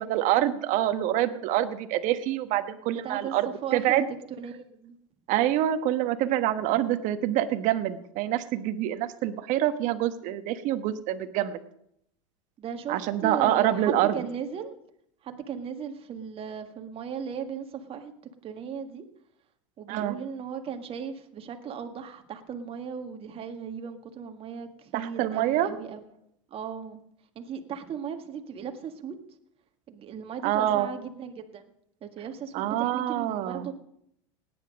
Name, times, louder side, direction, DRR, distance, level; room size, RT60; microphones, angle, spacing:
voice 1, 0.0-4.1 5.3-11.6 12.9-14.2 19.9-20.2 24.9-25.8 30.4-30.9 32.5-33.7, right 12 dB, 55° right, 10 dB, 1.2 m, -26 dB
voice 2, 2.9-3.3 3.6-4.0 4.4-5.0 12.6-14.8 15.2-18.1 18.4-19.0 19.8-26.0 26.5-27.0 27.4-29.2 29.9-31.6 32.0-33.7, right 7 dB, 35° right, 5 dB, 1.8 m, -37 dB
17.0 x 10.0 x 5.3 m, 0.74 s
hypercardioid pair, 90°, 16 cm